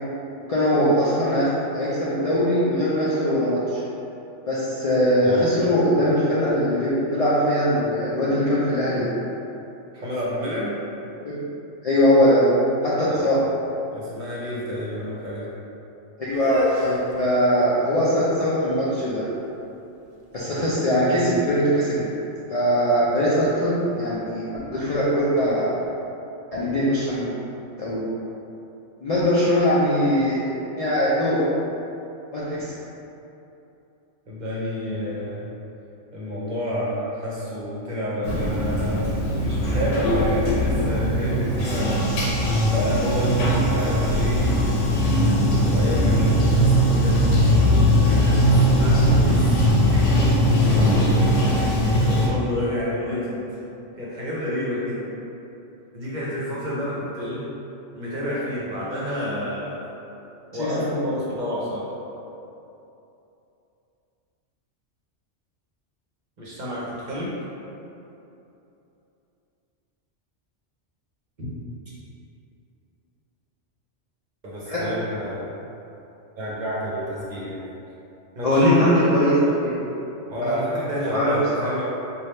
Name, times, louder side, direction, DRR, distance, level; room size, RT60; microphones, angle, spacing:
voice 1, 0.5-3.8 4.5-9.1 11.2-11.4 11.8-12.5 12.8-13.4 16.2-19.3 20.3-22.0 22.5-25.7 26.5-27.3 27.8-28.0 29.0-30.5 30.8-31.4 32.3-32.6 60.6-60.9 74.7-74.8 78.4-79.8 80.4-80.6 81.1-81.7, equal, 45° left, -9 dB, 0.5 m, -21 dB
voice 2, 5.2-5.5 9.9-10.8 13.1-13.2 13.9-15.5 20.6-20.7 34.3-35.5 36.1-39.0 39.4-45.0 45.7-47.2 47.9-49.5 49.9-53.4 54.0-55.1 55.9-57.4 57.9-59.8 60.5-61.9 66.4-67.4 71.4-71.5 74.4-75.5 76.4-77.6 78.4-78.7 80.3-81.8, equal, 45° right, -7 dB, 0.8 m, -29 dB
sound 1, 16.3-22.2, right 1 dB, 85° right, 1.0 m, -32 dB
Bathtub (filling or washing), 38.2-52.3, equal, 85° left, 1.0 m, -20 dB
3.4 x 2.3 x 4.2 m, 2.9 s
omnidirectional pair, 1.2 m